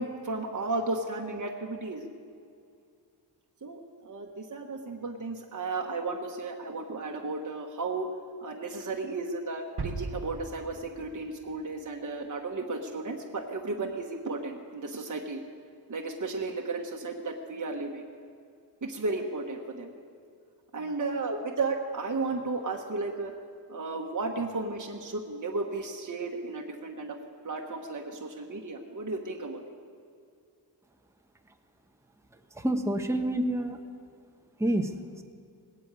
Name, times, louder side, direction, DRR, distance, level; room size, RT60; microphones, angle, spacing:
voice 1, 0.0-2.0 3.6-8.1 8.4-15.4 15.9-18.0 18.8-19.9 20.7-23.3 23.7-27.2 27.4-29.6, right 3 dB, 45° right, 1 dB, 1.2 m, -34 dB
sound 1, 9.8-11.6 11.9-12.0, right 3 dB, 60° right, 1.5 m, -38 dB
voice 2, 32.5-33.8 34.6-34.9, right 1 dB, 5° right, 5 dB, 1.0 m, -27 dB
19.0 x 8.2 x 8.9 m, 2.4 s
wide cardioid pair, 105°, 44 cm